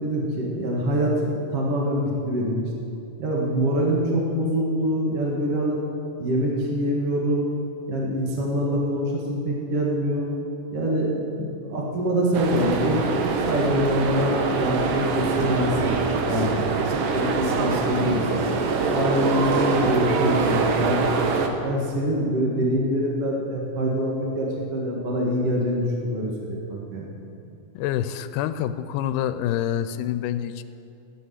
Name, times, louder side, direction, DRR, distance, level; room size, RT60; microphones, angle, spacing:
voice 1, 0.0-2.6 3.2-5.8 6.2-7.5 7.9-10.3 10.7-16.8 17.1-18.3 18.9-21.3 21.6-27.1, equal, 50° right, -2 dB, 2.6 m, -25 dB
sound 1, 12.3-21.5, right 4 dB, 85° right, 2.7 m, -24 dB
voice 2, 27.7-30.6, left 11 dB, 85° left, 11 dB, 2.1 m, -27 dB
14.0 x 9.7 x 8.1 m, 2.7 s
omnidirectional pair, 3.7 m